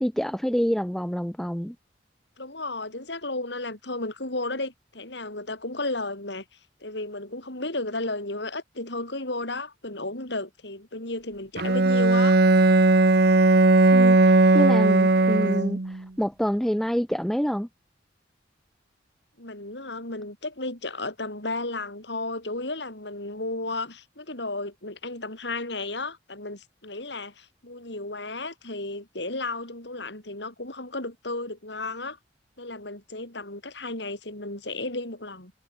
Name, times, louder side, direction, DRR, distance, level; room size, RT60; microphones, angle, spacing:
voice 1, 0.0-1.8 13.9-17.7, equal, ahead, 0.5 m, -27 dB
voice 2, 2.4-6.4 6.8-12.4 15.1-15.5 19.4-32.2 32.6-35.5, left 2 dB, 70° left, 7.4 m, -33 dB
Bowed string instrument, 11.6-16.0, right 2 dB, 60° right, 1.0 m, -18 dB
head